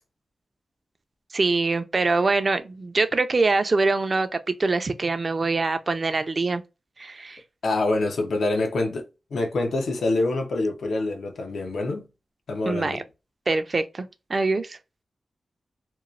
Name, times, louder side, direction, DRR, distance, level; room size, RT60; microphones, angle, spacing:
voice 1, 1.3-6.6 7.0-7.4 12.7-13.0 13.5-14.8, right 3 dB, 45° right, 0.4 m, -24 dB
voice 2, 7.6-12.1 12.5-13.0, left 2 dB, 90° left, 0.8 m, -26 dB
2.9 x 2.0 x 2.4 m
wide cardioid pair, 95°, 0 cm